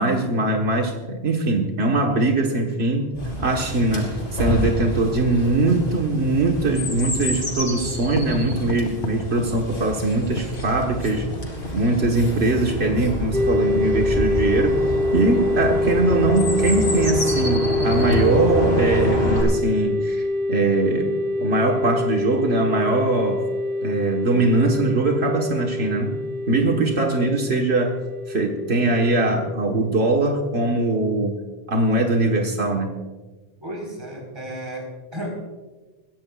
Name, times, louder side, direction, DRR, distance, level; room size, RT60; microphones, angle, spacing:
voice 1, 0.0-11.3 11.7-23.4 23.8-26.2 26.5-28.0 28.3-31.4 31.7-33.0, right 2 dB, 85° right, 1 dB, 1.6 m, -22 dB
Chirp tweet, 3.1-19.4, equal, 55° left, 4.2 m, -27 dB
Writing, 5.9-11.9, left 3 dB, 90° left, 1.1 m, -38 dB
sound 1, 13.3-30.7, left 2 dB, 5° left, 1.0 m, -25 dB
voice 2, 33.6-35.4, equal, 25° right, -1 dB, 4.1 m, -33 dB
22.5 x 15.5 x 2.4 m, 1.3 s
omnidirectional pair, 1.1 m